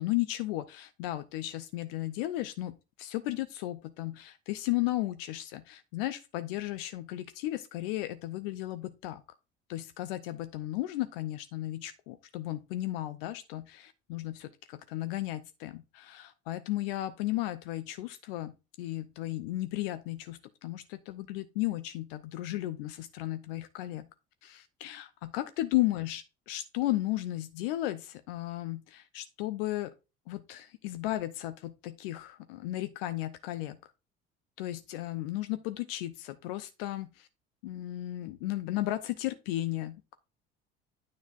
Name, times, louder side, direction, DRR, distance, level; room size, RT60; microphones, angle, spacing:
voice 1, 0.0-9.2 9.7-24.1 24.4-29.9 30.3-33.8 34.6-37.3 37.6-40.2, left 16 dB, 65° left, 0.6 m, -34 dB
9.5 x 6.1 x 2.5 m
figure-of-eight pair, 60°, 31 cm